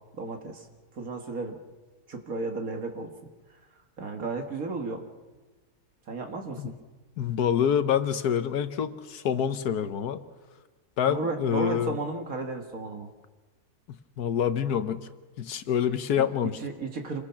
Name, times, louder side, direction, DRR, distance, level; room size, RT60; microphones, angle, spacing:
voice 1, 0.1-0.7 0.9-1.6 2.1-3.1 4.0-5.0 6.1-6.7 11.1-13.1 16.2-17.2, right 3 dB, 60° right, 4 dB, 2.1 m, -33 dB
voice 2, 7.2-10.2 11.0-11.9 14.2-15.1 15.4-16.5, left 8 dB, 75° left, 11 dB, 1.4 m, -26 dB
27.0 x 21.0 x 5.8 m, 1.3 s
omnidirectional pair, 1.7 m